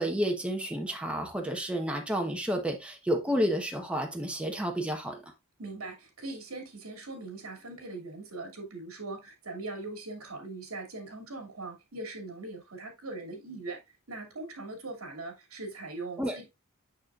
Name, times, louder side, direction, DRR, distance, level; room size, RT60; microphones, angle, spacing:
voice 1, 0.0-5.2 16.2-16.3, equal, 5° right, 1.0 m, -30 dB
voice 2, 5.6-13.8 14.1-16.4, right 2 dB, 75° right, 2.6 m, -41 dB
6.5 x 6.4 x 2.5 m
head